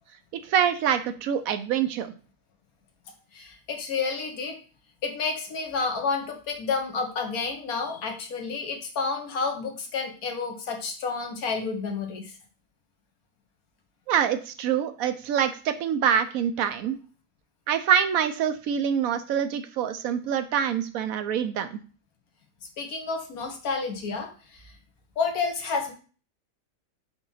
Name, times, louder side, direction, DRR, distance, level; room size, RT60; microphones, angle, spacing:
voice 1, 0.4-2.1 14.1-17.0 17.7-21.8, right 8 dB, 75° right, 10 dB, 1.1 m, -25 dB
voice 2, 3.3-4.6 5.0-12.4 22.8-24.7 25.2-25.9, left 4 dB, 80° left, 3 dB, 1.6 m, -30 dB
5.8 x 3.0 x 5.5 m, 0.38 s
omnidirectional pair, 1.5 m